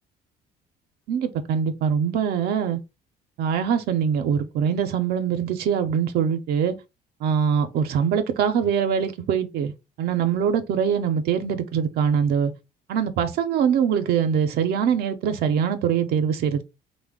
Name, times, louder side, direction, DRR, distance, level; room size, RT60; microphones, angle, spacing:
voice 1, 1.1-2.8 3.4-6.8 7.2-9.7 10.0-12.5 12.9-16.6, right 7 dB, 70° right, 0.5 m, -23 dB
3.1 x 2.1 x 3.5 m
cardioid pair, 110°, 17 cm